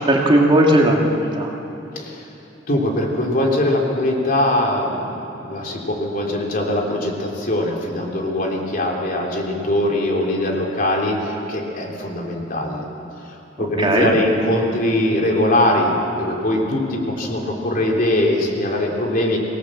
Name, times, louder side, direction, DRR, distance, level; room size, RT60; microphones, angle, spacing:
voice 1, 0.0-1.5 13.6-14.1, right 1 dB, 30° right, -1 dB, 2.3 m, -17 dB
voice 2, 1.9-2.2 2.7-5.1 5.4-12.8 13.6-19.4, left 1 dB, 50° left, -1 dB, 3.3 m, -21 dB
25.5 x 18.0 x 7.6 m, 2.9 s
head